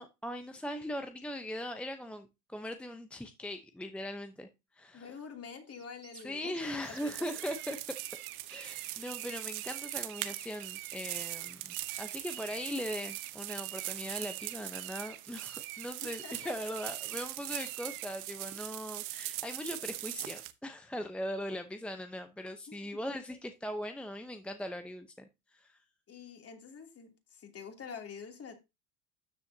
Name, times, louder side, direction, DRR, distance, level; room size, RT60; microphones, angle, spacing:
voice 1, 0.0-4.5 4.7-5.2 6.1-7.8 8.5-25.8, equal, 5° left, 0.8 m, -40 dB
voice 2, 4.9-6.6 6.9-7.1 16.0-16.5 22.7-23.0 26.1-28.5, left 6 dB, 35° left, 2.9 m, -46 dB
sound 1, 5.7-18.1, right 15 dB, 55° right, 1.2 m, -48 dB
sound 2, 6.8-20.5, right 17 dB, 75° right, 1.2 m, -41 dB
13.0 x 7.0 x 2.8 m
hypercardioid pair, 95°, 43 cm